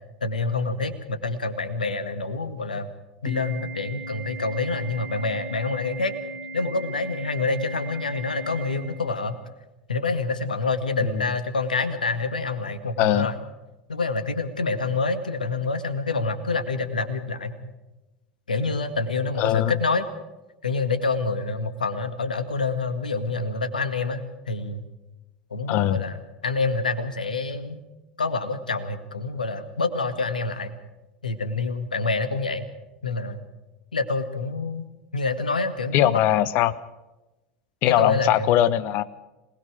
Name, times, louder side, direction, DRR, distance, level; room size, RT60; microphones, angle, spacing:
voice 1, 0.2-2.9 3.2-6.1 6.5-9.4 9.9-13.4 13.9-17.7 18.5-20.1 20.6-24.9 25.5-26.2 26.4-27.8 28.2-30.8 31.2-32.7 33.0-33.4 33.9-34.8 35.1-36.2 37.8-38.6, left 3 dB, 80° left, 10 dB, 2.0 m, -27 dB
Organ, 3.3-9.3, right 2 dB, 25° right, 7.0 m, -38 dB
voice 2, 13.0-13.3 19.4-19.8 25.7-26.0 35.9-36.8 37.8-39.0, left 12 dB, 50° left, 18 dB, 1.1 m, -21 dB
26.5 x 20.0 x 5.0 m, 1.0 s
figure-of-eight pair, 80°, 4 cm